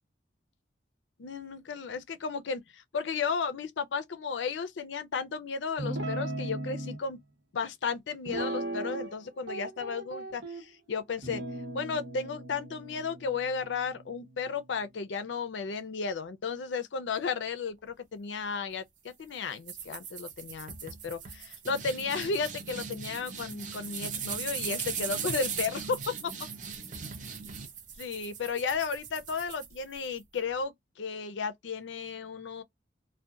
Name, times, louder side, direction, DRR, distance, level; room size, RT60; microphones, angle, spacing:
voice 1, 1.2-7.2 7.5-11.4 11.7-26.3 28.0-32.6, left 5 dB, 80° left, 0.5 m, -34 dB
Guitar, 5.8-7.0 8.2-9.2 9.5-10.6 11.2-14.7, right 1 dB, 80° right, 0.8 m, -37 dB
sound 1, 19.7-30.2, right 6 dB, 40° right, 0.5 m, -39 dB
2.7 x 2.1 x 2.3 m
head